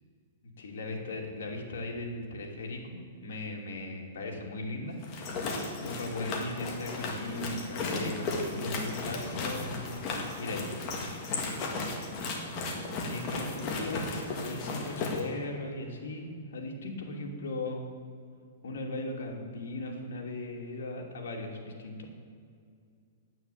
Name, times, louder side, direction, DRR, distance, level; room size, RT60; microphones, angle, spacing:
voice 1, 0.6-5.0 5.8-9.8 10.4-10.7 12.6-17.9 18.6-22.1, left 2 dB, 80° left, 1 dB, 2.7 m, -38 dB
sound 1, 5.0-15.2, left 3 dB, 30° left, 1.8 m, -35 dB
9.4 x 9.0 x 8.5 m, 2.2 s
hypercardioid pair, 165°, 0 cm